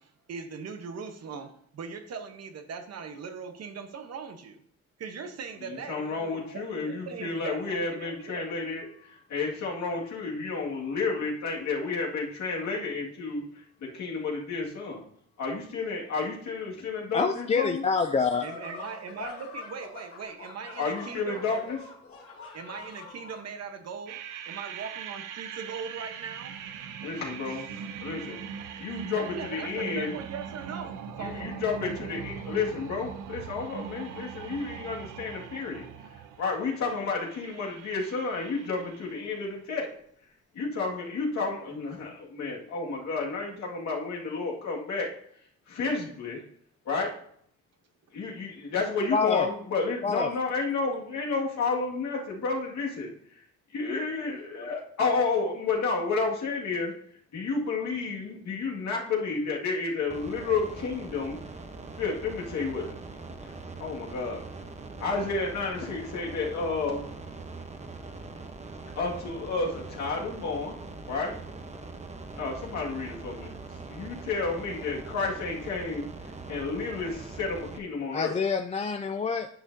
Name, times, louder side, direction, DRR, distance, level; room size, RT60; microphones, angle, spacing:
voice 1, 0.0-4.6 5.0-8.5 18.4-21.6 22.5-26.5 29.1-31.5 66.7-66.9, right 6 dB, 55° right, 7 dB, 1.0 m, -40 dB
voice 2, 5.6-15.0 15.4-17.8 20.8-21.8 27.0-28.4 28.8-29.2 29.5-30.1 31.2-35.8 36.4-39.9 40.5-45.1 45.7-46.4 46.9-47.1 48.1-53.1 53.7-56.9 57.3-61.4 62.0-62.9 63.4-63.5 63.8-64.4 65.0-67.0 69.0-70.8 71.1-71.3 72.4-73.5 73.9-76.1 76.5-78.3, left 4 dB, 65° left, -2 dB, 2.0 m, -31 dB
voice 3, 17.1-18.5 49.1-49.5 50.0-50.4 78.1-79.5, left 5 dB, 20° left, 6 dB, 0.4 m, -26 dB
sound 1, 18.3-23.4, left 4 dB, 45° left, 2.3 m, -44 dB
sound 2, 24.1-39.4, right 7 dB, 90° right, 0.7 m, -41 dB
sound 3, 60.1-77.8, right 3 dB, 20° right, 0.9 m, -42 dB
10.0 x 6.2 x 2.7 m, 0.65 s
cardioid pair, 90°, 30 cm